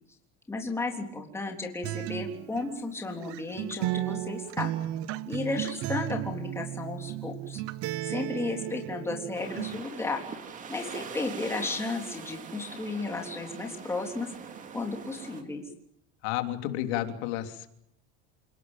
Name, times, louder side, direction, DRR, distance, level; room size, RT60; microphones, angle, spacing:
voice 1, 0.5-4.7 5.3-7.6 8.1-10.2 10.7-14.3 14.7-15.6, left 3 dB, 10° left, 2 dB, 3.6 m, -34 dB
Acoustic guitar, 1.8-9.8, right 15 dB, 45° right, 1.0 m, -35 dB
sound 1, 9.3-15.4, right 6 dB, 25° right, 2.6 m, -43 dB
voice 2, 16.2-17.7, left 13 dB, 75° left, 7 dB, 3.4 m, -31 dB
29.0 x 18.5 x 9.1 m, 0.74 s
cardioid pair, 170°, 33 cm